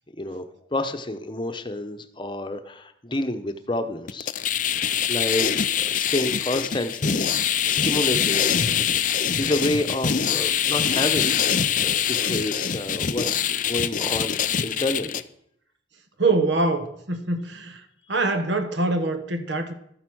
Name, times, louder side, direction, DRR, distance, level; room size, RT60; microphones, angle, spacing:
voice 1, 0.7-4.3 4.8-5.5 5.8-8.4 9.4-15.2, left 1 dB, 25° left, 0.9 m, -29 dB
sound 1, 4.1-15.2, left 8 dB, 40° left, 0.5 m, -24 dB
voice 2, 16.2-17.8 18.1-19.7, right 2 dB, 70° right, 1.3 m, -24 dB
13.0 x 8.1 x 6.2 m
head